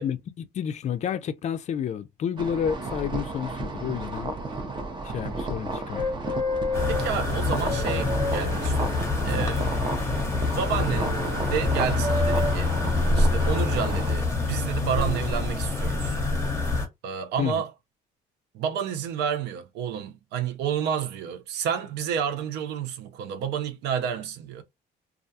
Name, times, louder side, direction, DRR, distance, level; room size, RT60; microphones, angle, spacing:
voice 1, 0.0-4.4 5.1-6.2 17.4-17.5, left 8 dB, 45° left, 0.4 m, -30 dB
sound 1, 2.4-14.2, right 3 dB, 25° right, 0.6 m, -33 dB
sound 2, 5.9-7.1 7.6-9.3 10.8-11.4 12.0-12.5 13.4-14.0 14.9-15.2, left 1 dB, 45° right, 1.0 m, -31 dB
sound 3, 6.7-16.9, left 3 dB, 15° left, 0.8 m, -26 dB
voice 2, 6.9-9.7 10.6-12.7 13.1-16.2 17.0-17.7 18.5-24.6, right 8 dB, 85° right, 0.6 m, -30 dB
2.4 x 2.2 x 2.6 m
cardioid pair, 110°, 17 cm